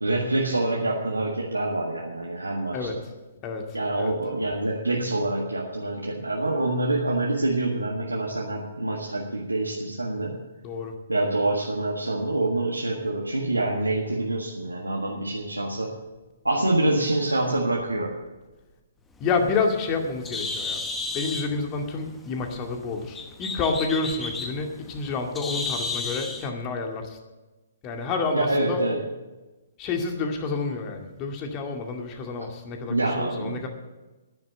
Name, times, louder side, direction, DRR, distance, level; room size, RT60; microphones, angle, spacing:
voice 1, 0.0-3.0 3.7-10.4 11.1-15.9 16.4-18.1 28.3-29.0 32.9-33.7, right 2 dB, 90° right, -2 dB, 1.7 m, -26 dB
voice 2, 19.2-20.8 21.1-27.2 27.8-28.8 29.8-33.7, left 4 dB, 25° left, 3 dB, 2.2 m, -29 dB
Bird, 19.2-26.5, left 3 dB, 10° left, 1.0 m, -34 dB
10.5 x 10.0 x 7.7 m, 1.1 s
figure-of-eight pair, 125°, 0 cm